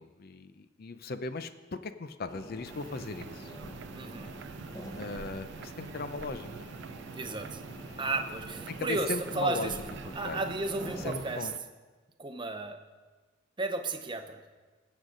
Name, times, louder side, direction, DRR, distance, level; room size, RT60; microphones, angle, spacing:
voice 1, 0.0-3.5 5.0-6.7 8.7-9.7 10.0-10.4 11.0-11.5, left 3 dB, 45° left, 11 dB, 0.5 m, -38 dB
sound 1, 2.3-11.1, equal, 15° left, 1.1 m, -45 dB
sound 2, 2.6-11.6, right 6 dB, 55° right, 0.3 m, -46 dB
voice 2, 3.9-4.3 7.1-7.6 8.0-9.7 10.1-11.5 12.2-12.8 13.6-14.4, right 3 dB, 20° right, 6 dB, 0.7 m, -33 dB
20.5 x 8.1 x 3.9 m, 1.3 s
head